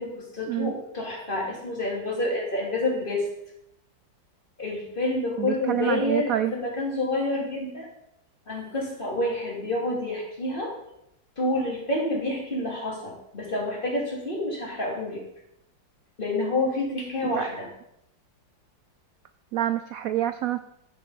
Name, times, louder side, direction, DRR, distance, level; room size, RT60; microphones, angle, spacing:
voice 1, 0.0-3.3 4.6-7.9 8.5-10.7 11.4-15.2 16.2-17.7, left 2 dB, 25° left, -2 dB, 3.2 m, -28 dB
voice 2, 5.4-6.5 17.3-17.4 19.5-20.6, right 12 dB, 80° right, 11 dB, 0.7 m, -27 dB
14.5 x 5.6 x 5.6 m, 0.79 s
omnidirectional pair, 2.0 m